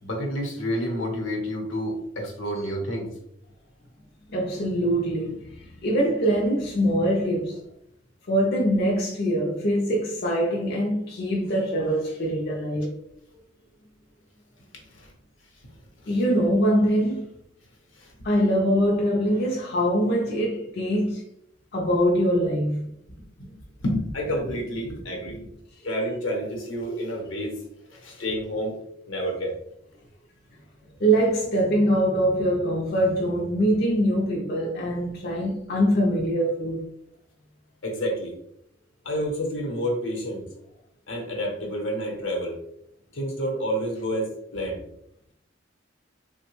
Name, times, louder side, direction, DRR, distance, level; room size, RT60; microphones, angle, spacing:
voice 1, 0.0-3.1 14.9-15.1 18.0-18.3 23.4-25.4 25.8-27.5 28.0-28.7 29.1-29.5 37.8-38.3 39.0-40.4 41.1-42.6 43.1-44.8, equal, 80° left, 0.9 m, -29 dB
voice 2, 4.3-7.6 8.3-12.9 16.1-17.2 18.2-21.2 21.7-22.9 31.0-36.8, equal, 55° left, 0.5 m, -23 dB
3.3 x 2.1 x 3.0 m
head